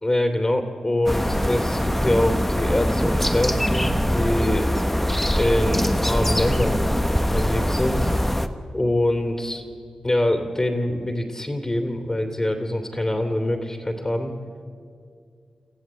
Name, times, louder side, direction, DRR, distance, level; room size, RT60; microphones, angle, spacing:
voice 1, 0.0-4.7 5.3-6.9 7.2-8.1 8.7-9.6 10.0-14.3, left 1 dB, 25° left, 4 dB, 2.8 m, -24 dB
sound 1, 1.1-8.5, equal, 5° left, 1.2 m, -22 dB
26.5 x 14.0 x 8.6 m, 2.3 s
cardioid pair, 45°, 2 cm